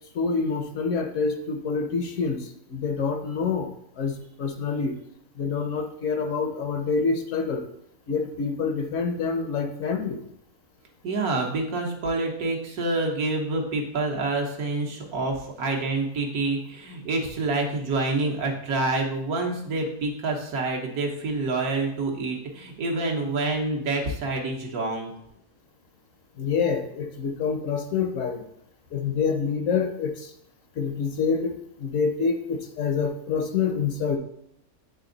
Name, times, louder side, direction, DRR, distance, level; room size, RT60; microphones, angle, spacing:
voice 1, 0.1-2.4 2.7-3.7 4.0-4.1 4.4-4.9 5.4-7.6 8.1-10.2 26.4-28.4 28.9-30.3 30.8-34.2, left 5 dB, 65° left, 5 dB, 1.0 m, -26 dB
voice 2, 11.0-25.1, right 2 dB, 80° right, 0 dB, 1.5 m, -27 dB
8.0 x 3.4 x 3.8 m, 0.73 s
omnidirectional pair, 1.6 m